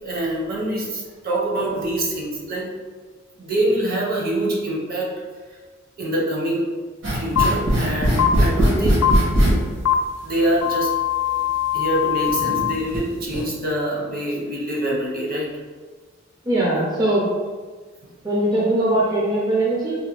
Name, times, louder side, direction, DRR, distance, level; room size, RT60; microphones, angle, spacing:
voice 1, 0.0-2.7 3.4-5.1 6.0-6.7 7.1-9.1 9.5-9.6 10.2-10.9 11.7-15.5, right 1 dB, 50° right, -3 dB, 0.8 m, -25 dB
sound 1, 7.0-9.5 10.6-10.7 11.4-11.5 12.3-13.0 13.2-13.4, equal, 75° right, 1.4 m, -19 dB
sound 2, 7.4-7.5 8.2-8.3 9.0-9.1 9.9-10.0 10.6-12.7, left 13 dB, 85° left, 0.3 m, -21 dB
voice 2, 16.5-17.3 18.2-19.9, right 1 dB, 20° right, -5 dB, 0.4 m, -20 dB
3.9 x 2.2 x 2.9 m, 1.4 s
head